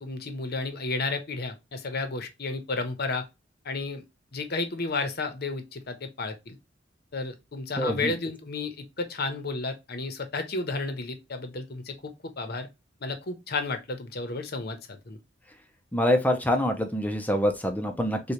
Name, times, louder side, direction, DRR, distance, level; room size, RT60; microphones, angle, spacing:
voice 1, 0.0-3.2 3.6-4.0 4.3-6.6 7.1-12.7 13.0-15.2, left 3 dB, 55° left, 0.9 m, -32 dB
voice 2, 7.8-8.1 15.9-18.2, equal, 10° left, 0.6 m, -25 dB
6.5 x 2.4 x 2.9 m
head